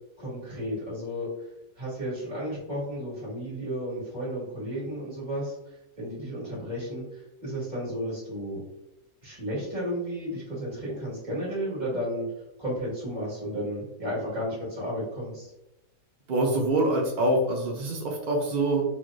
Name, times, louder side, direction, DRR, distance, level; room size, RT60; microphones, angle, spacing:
voice 1, 0.2-1.3 1.8-5.5 6.0-8.6 9.2-12.3 12.6-15.5, equal, 30° right, -6 dB, 1.7 m, -33 dB
voice 2, 16.3-18.8, right 1 dB, 65° right, 0 dB, 0.4 m, -25 dB
4.2 x 3.0 x 2.5 m, 0.89 s
omnidirectional pair, 1.6 m